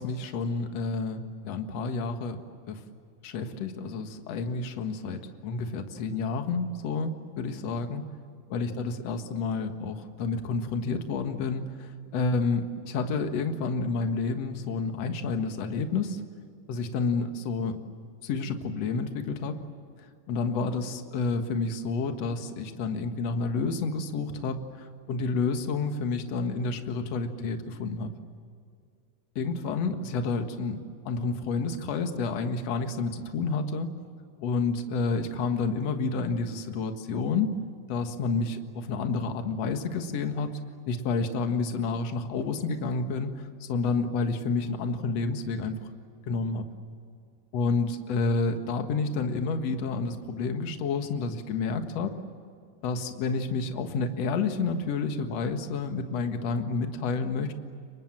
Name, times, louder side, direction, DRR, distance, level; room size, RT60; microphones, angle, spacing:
voice 1, 0.0-2.4 2.7-2.8 3.2-8.0 8.5-16.2 16.7-17.8 18.2-19.6 20.3-28.1 29.4-33.9 34.4-37.5 37.9-40.5 40.9-45.8 46.3-46.7 47.5-52.2 52.8-57.5, left 4 dB, 55° left, 6 dB, 2.5 m, -29 dB
29.5 x 24.5 x 7.6 m, 2.3 s
omnidirectional pair, 3.9 m